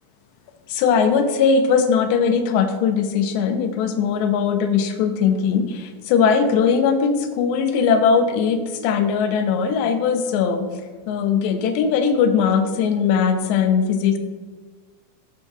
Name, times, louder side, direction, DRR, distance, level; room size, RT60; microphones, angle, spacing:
voice 1, 0.7-10.7 11.1-14.2, left 6 dB, 55° left, 9 dB, 0.9 m, -19 dB
13.0 x 4.7 x 3.4 m, 1.4 s
supercardioid pair, 135°, 0 cm